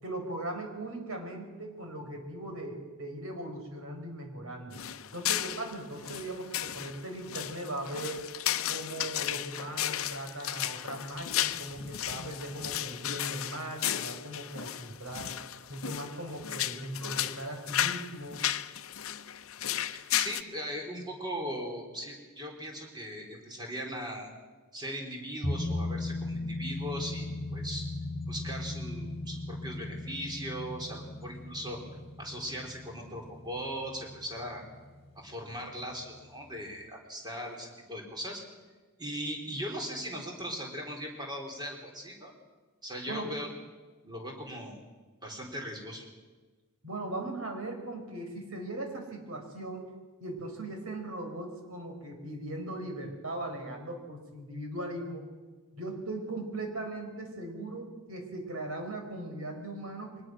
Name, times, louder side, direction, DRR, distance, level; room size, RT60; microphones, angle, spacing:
voice 1, 0.0-4.8 5.1-8.3 8.7-15.3 15.7-18.4 43.1-43.3 46.8-49.9 50.2-55.2 55.7-60.2, right 1 dB, 75° right, 3 dB, 4.8 m, -39 dB
sound 1, 4.7-20.4, left 11 dB, 70° left, 0.7 m, -34 dB
voice 2, 20.1-24.3 24.7-27.8 28.3-31.8 32.2-34.6 35.2-38.4 39.0-42.3 42.8-43.5 44.0-44.8 45.2-46.1, equal, 20° right, 1 dB, 3.9 m, -39 dB
sound 2, 25.4-34.5 34.8-34.9, left 2 dB, 30° left, 2.8 m, -37 dB
23.0 x 20.0 x 6.3 m, 1.3 s
head